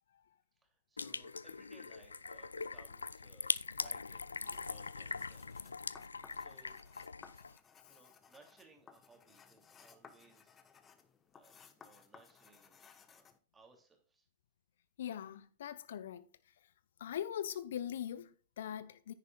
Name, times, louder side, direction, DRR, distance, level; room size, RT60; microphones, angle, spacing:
voice 1, 0.5-4.3 4.6-5.5 6.0-6.8 7.9-10.6 11.3-13.3 13.5-14.3, right 3 dB, 15° right, 2.7 m, -64 dB
sound 1, 1.0-7.6, left 4 dB, 80° left, 0.4 m, -41 dB
sound 2, 4.4-13.4, left 6 dB, 20° left, 1.0 m, -61 dB
voice 2, 15.0-16.3 17.0-19.1, left 10 dB, 60° left, 0.8 m, -41 dB
10.0 x 9.8 x 2.3 m
figure-of-eight pair, 95°, 0 cm